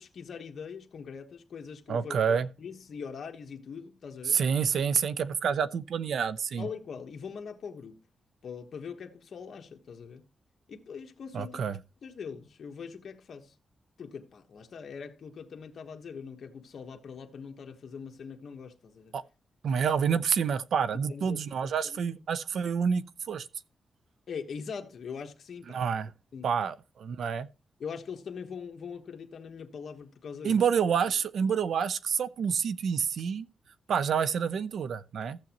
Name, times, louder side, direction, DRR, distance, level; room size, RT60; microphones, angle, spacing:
voice 1, 0.0-4.4 6.6-8.0 8.4-10.3 10.7-11.6 12.0-13.5 14.0-19.2 21.1-22.2 24.3-25.8 26.3-26.5 27.8-30.6, left 6 dB, 65° left, 1.2 m, -42 dB
voice 2, 1.9-2.5 4.3-6.7 11.3-11.8 19.1-19.2 19.6-23.5 25.7-26.1 26.4-27.5 30.4-33.5 33.9-35.4, right 7 dB, 80° right, 0.6 m, -28 dB
15.0 x 7.1 x 2.9 m
cardioid pair, 95°, 0 cm